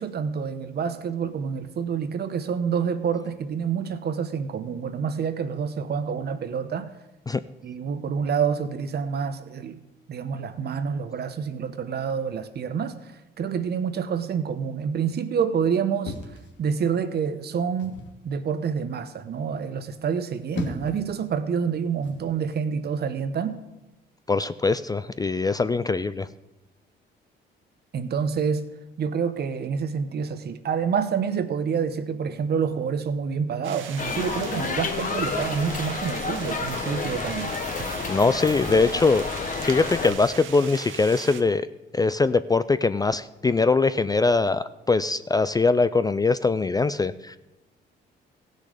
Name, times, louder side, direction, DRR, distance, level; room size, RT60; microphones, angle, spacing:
voice 1, 0.0-6.9 7.6-16.1 16.6-18.0 18.2-23.6 27.9-28.7 29.0-37.6, right 6 dB, 55° right, 11 dB, 0.9 m, -27 dB
sound 1, 16.0-17.1 17.8-18.2 20.2-21.1 22.0-22.3, left 3 dB, 65° left, 1.7 m, -36 dB
voice 2, 24.3-26.3 38.1-39.2 39.6-41.7 41.9-47.4, left 3 dB, 20° left, 14 dB, 0.3 m, -22 dB
sound 2, 33.6-41.4, right 8 dB, 80° right, 1.0 m, -39 dB
sound 3, 34.0-40.1, left 4 dB, 40° left, 1.1 m, -30 dB
15.5 x 6.5 x 5.0 m, 0.99 s
cardioid pair, 90°, 20 cm